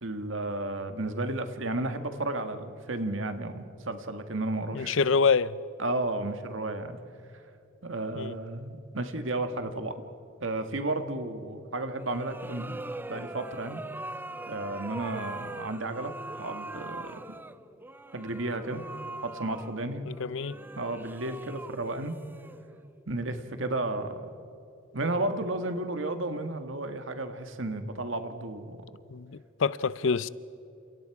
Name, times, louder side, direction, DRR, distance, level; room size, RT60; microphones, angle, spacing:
voice 1, 0.0-5.0 5.8-7.0 7.8-9.9 10.4-12.8 13.1-13.8 14.5-16.1 16.4-17.2 18.1-18.8 19.2-20.1 20.8-22.2 23.1-24.3 24.9-28.8, right 2 dB, 70° right, 1.7 m, -33 dB
voice 2, 4.7-5.6 8.1-8.4 20.1-20.6 29.1-30.3, left 5 dB, 65° left, 0.6 m, -26 dB
sound 1, 12.0-23.0, right 2 dB, 10° right, 0.5 m, -42 dB
30.0 x 27.5 x 4.9 m
head